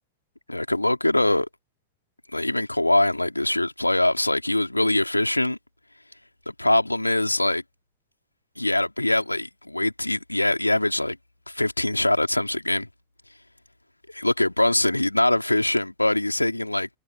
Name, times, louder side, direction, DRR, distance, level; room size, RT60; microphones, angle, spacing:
voice 1, 0.5-1.5 2.3-5.6 6.5-7.6 8.6-11.2 11.5-12.9 14.1-16.9, left 1 dB, 85° left, 3.7 m, -23 dB
figure-of-eight pair, 90°, 0 cm